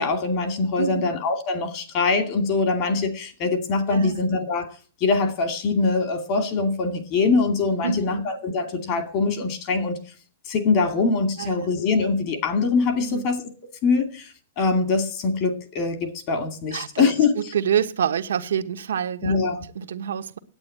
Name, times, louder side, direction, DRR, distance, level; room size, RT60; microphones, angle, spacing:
voice 1, 0.0-4.7 5.0-10.0 10.5-13.4 13.8-17.4 19.2-19.6, left 4 dB, 35° left, 2.3 m, -23 dB
voice 2, 0.8-1.1 3.9-4.2 7.8-8.3 11.4-11.7 13.0-13.3 16.7-17.1 17.4-19.5 19.7-20.4, right 8 dB, 85° right, 1.2 m, -27 dB
9.7 x 8.7 x 8.6 m
hypercardioid pair, 155°, 0 cm